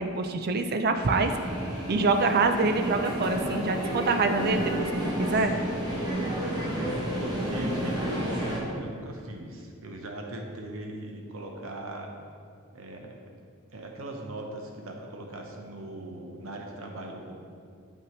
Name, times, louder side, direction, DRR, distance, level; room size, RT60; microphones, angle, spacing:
voice 1, 0.0-1.3 1.9-4.9 5.2-5.5, right 3 dB, 50° right, 7 dB, 0.4 m, -25 dB
sound 1, 1.0-8.6, right 1 dB, 20° right, 1.2 m, -31 dB
voice 2, 6.8-12.1 12.7-13.4 13.7-17.4, right 1 dB, 70° right, 1 dB, 0.9 m, -39 dB
7.5 x 5.6 x 3.1 m, 2.2 s
head